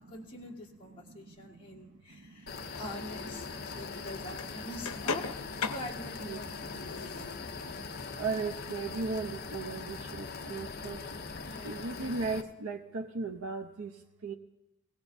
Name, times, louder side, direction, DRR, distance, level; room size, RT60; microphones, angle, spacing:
voice 1, 0.1-5.2 5.7-6.5 6.9-7.3 11.4-11.8, left 1 dB, 25° left, -3 dB, 1.7 m, -44 dB
voice 2, 0.9-2.7 3.4-4.2 4.7-5.0 5.3-5.4 6.2-7.3 7.6-11.0 11.6-14.3, right 4 dB, 75° right, 3 dB, 0.7 m, -39 dB
sound 1, 2.5-12.4, left 4 dB, 45° left, 0.6 m, -41 dB
sound 2, 2.6-8.9, left 5 dB, 80° left, 0.7 m, -41 dB
20.5 x 17.0 x 2.7 m, 0.94 s
head